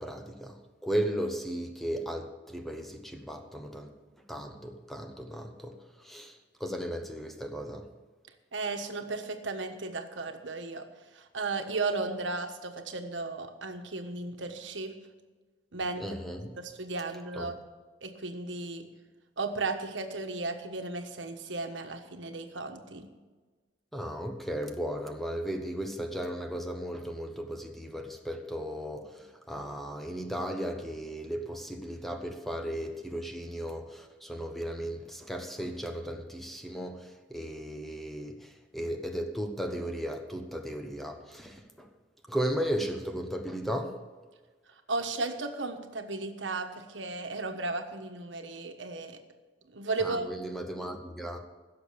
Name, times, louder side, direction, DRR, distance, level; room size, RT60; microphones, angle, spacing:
voice 1, 0.0-3.9 4.3-7.9 16.0-16.6 17.3-17.5 23.9-41.9 42.3-44.0 50.0-51.4, equal, ahead, 1.1 m, -36 dB
voice 2, 8.5-10.9 11.1-14.9 15.7-16.0 16.6-17.6 18.0-18.9 19.4-23.1 44.9-49.2 49.7-50.3, right 3 dB, 90° right, 1.3 m, -35 dB
16.0 x 6.7 x 6.8 m
head